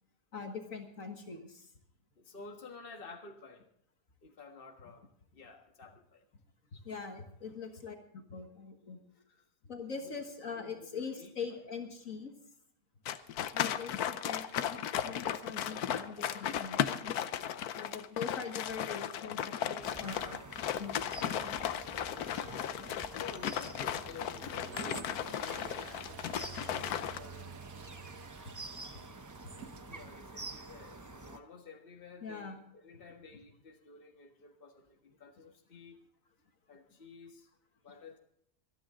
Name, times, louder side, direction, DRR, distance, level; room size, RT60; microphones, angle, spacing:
voice 1, 0.3-1.7 6.7-9.0 9.6-12.3 13.5-17.1 17.8-20.4 20.8-21.6 32.2-32.6, left 5 dB, 65° left, 5 dB, 1.9 m, -43 dB
voice 2, 2.2-3.7 4.2-5.1 5.3-6.2 9.1-9.5 10.0-10.1 10.5-11.7 22.1-22.3 23.1-27.6 29.4-36.0 36.7-37.5 37.8-38.2, left 4 dB, 40° left, 3 dB, 1.7 m, -52 dB
sound 1, 13.1-27.2, left 10 dB, 90° left, 1.3 m, -36 dB
sound 2, 19.8-31.4, right 3 dB, 25° right, 0.4 m, -48 dB
Toilet flush, 24.5-30.3, right 6 dB, 70° right, 1.4 m, -52 dB
26.0 x 9.6 x 3.8 m, 0.70 s
omnidirectional pair, 1.6 m